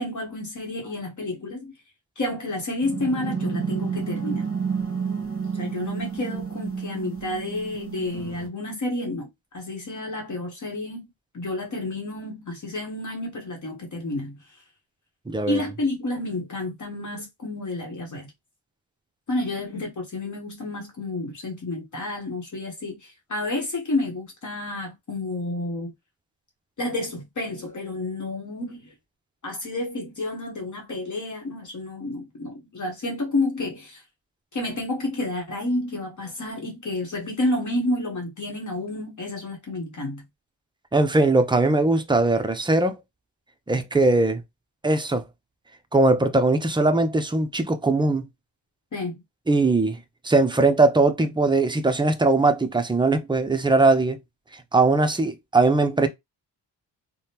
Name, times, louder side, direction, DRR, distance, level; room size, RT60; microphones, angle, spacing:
voice 1, 0.0-1.7 2.2-4.5 5.6-11.1 11.3-14.4 15.5-18.3 19.3-25.9 26.8-28.9 29.4-34.0 34.5-40.2 48.9-49.2, left 2 dB, 40° left, 1.0 m, -30 dB
sound 1, 2.8-8.5, right 6 dB, 30° right, 1.0 m, -30 dB
voice 2, 15.3-15.6 40.9-42.9 43.7-44.4 44.8-45.2 45.9-48.2 49.5-54.2 54.5-56.1, right 2 dB, 10° right, 0.4 m, -20 dB
3.3 x 2.1 x 2.8 m
wide cardioid pair, 110°, 45 cm